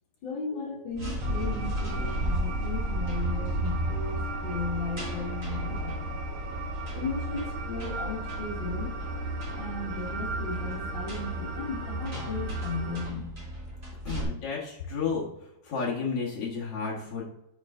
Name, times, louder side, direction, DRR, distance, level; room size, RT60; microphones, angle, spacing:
voice 1, 0.2-6.5 6.9-8.9 9.6-13.3, left 3 dB, 75° left, -4 dB, 1.1 m, -36 dB
sound 1, 0.9-14.2, right 1 dB, 30° right, 1.6 m, -35 dB
sound 2, 1.2-13.1, right 1 dB, 75° right, 1.7 m, -35 dB
voice 2, 14.0-15.3 15.6-17.2, left 5 dB, 55° left, -4 dB, 1.6 m, -31 dB
8.4 x 4.8 x 3.8 m, 0.81 s
omnidirectional pair, 5.0 m